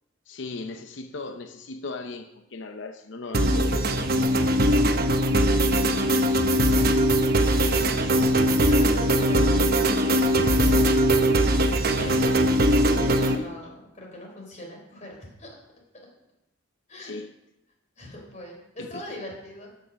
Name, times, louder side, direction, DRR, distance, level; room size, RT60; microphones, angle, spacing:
voice 1, 0.3-3.9 11.9-12.3 12.9-13.5 17.0-17.3 18.8-19.0, left 3 dB, 70° left, 5 dB, 0.7 m, -37 dB
sound 1, 3.3-13.4, right 1 dB, 50° right, 0.9 m, -21 dB
voice 2, 5.7-6.7 7.3-10.9 12.7-15.5 16.9-17.2 18.0-19.7, left 1 dB, 40° left, 0 dB, 3.7 m, -42 dB
13.5 x 6.5 x 6.3 m, 0.91 s
head